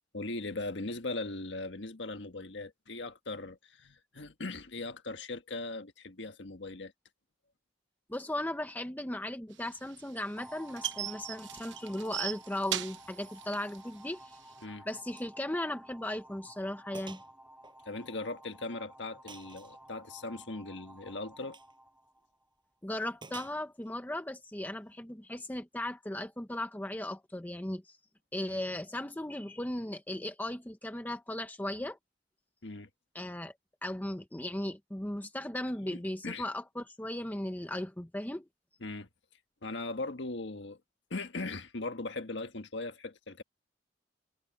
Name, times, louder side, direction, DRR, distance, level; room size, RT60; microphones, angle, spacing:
voice 1, 0.1-6.9 14.6-14.9 17.8-21.6 32.6-32.9 35.8-36.5 38.8-39.1 39.6-40.8 41.1-43.4, left 2 dB, 80° left, 1.5 m, -39 dB
voice 2, 8.1-14.4 14.7-17.2 22.8-28.0 28.3-32.0 33.1-33.5 33.8-38.4, left 1 dB, 10° left, 0.8 m, -37 dB
sound 1, 9.6-14.6, right 12 dB, 85° right, 0.9 m, -38 dB
sound 2, 10.4-22.5, right 1 dB, 5° right, 3.0 m, -53 dB
Gunshot gunfire, 15.1-15.4 15.7-15.8 16.3-16.4 16.9-17.3 17.6-18.6 19.3-19.8 21.4-21.7 23.2-23.9, right 4 dB, 25° right, 5.9 m, -50 dB
head